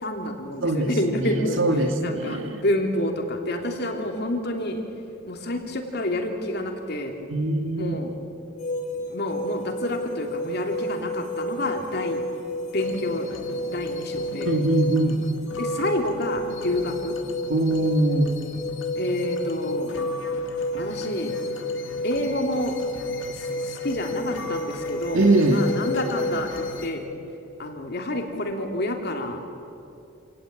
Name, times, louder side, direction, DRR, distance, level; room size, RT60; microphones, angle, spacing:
voice 1, 0.0-1.6 2.0-4.8 5.3-7.1 7.8-8.1 9.1-12.2 12.7-13.3 13.7-14.6 15.6-17.2 18.9-19.9 20.7-21.3 22.0-22.7 23.3-26.5 26.8-27.1 27.6-29.4, left 1 dB, 55° left, 3 dB, 3.0 m, -28 dB
voice 2, 1.2-2.6 7.3-7.9 14.4-15.2 17.5-18.3 25.1-25.7, right 2 dB, 80° right, 5 dB, 2.4 m, -22 dB
sound 1, 8.6-26.9, left 1 dB, 40° left, 3.7 m, -31 dB
sound 2, 12.8-26.9, left 3 dB, 70° left, 2.0 m, -40 dB
27.5 x 18.0 x 8.9 m, 2.6 s
head